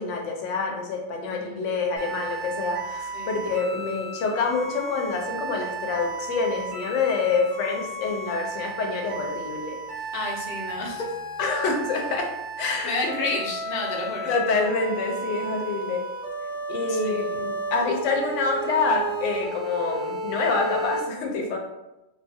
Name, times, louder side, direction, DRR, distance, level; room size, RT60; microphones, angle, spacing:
voice 1, 0.0-9.8 11.4-12.3 12.6-13.4 14.2-16.0 16.7-21.6, left 4 dB, 85° left, 1 dB, 0.9 m, -27 dB
voice 2, 1.2-1.6 3.1-3.4 10.1-11.1 12.8-14.3 16.9-17.3, left 2 dB, 55° left, -2 dB, 0.8 m, -31 dB
sound 1, 2.0-21.0, right 2 dB, 80° right, 1.0 m, -34 dB
2.6 x 2.3 x 2.6 m, 0.95 s
omnidirectional pair, 1.2 m